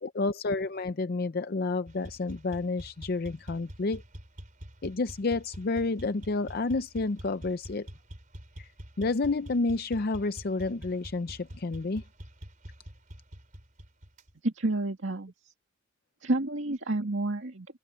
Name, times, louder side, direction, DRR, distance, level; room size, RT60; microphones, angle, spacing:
voice 1, 0.0-4.0 4.8-7.9 8.6-8.7 9.0-12.0, left 3 dB, 50° left, 0.6 m, -30 dB
sound 1, 1.9-14.3, equal, 40° right, 4.1 m, -46 dB
voice 2, 14.4-15.5 16.2-17.7, right 2 dB, 65° right, 2.2 m, -30 dB
head